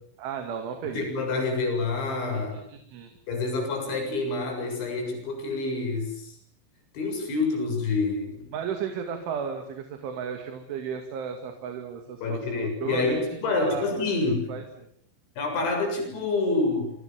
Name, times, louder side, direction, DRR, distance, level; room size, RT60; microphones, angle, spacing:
voice 1, 0.2-1.1 2.3-3.1 8.5-14.0 14.5-14.9, right 7 dB, 80° right, 5 dB, 4.8 m, -34 dB
voice 2, 0.8-2.6 3.3-6.4 6.9-8.5 12.2-14.5 15.4-16.9, left 3 dB, 75° left, 4 dB, 9.7 m, -27 dB
28.5 x 25.0 x 7.6 m, 0.66 s
omnidirectional pair, 5.4 m